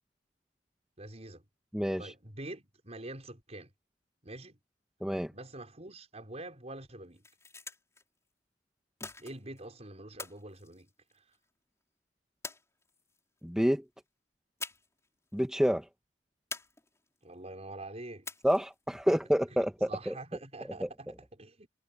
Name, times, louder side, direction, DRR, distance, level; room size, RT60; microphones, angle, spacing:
voice 1, 1.0-1.4 2.0-3.7 4.2-4.6 5.3-7.3 9.2-10.9 17.2-18.3 19.1-19.2 19.5-21.7, right 2 dB, 35° right, 5.9 m, -45 dB
voice 2, 1.7-2.1 5.0-5.3 13.4-13.8 15.3-15.8 18.4-20.2 20.8-20.9, equal, 5° right, 1.4 m, -28 dB
sound 1, 7.0-8.0 9.0-9.6 10.2-11.4 12.4-13.2 14.6-15.1 15.3-15.4 16.5-17.2 18.2-18.8, left 3 dB, 15° left, 5.4 m, -45 dB
head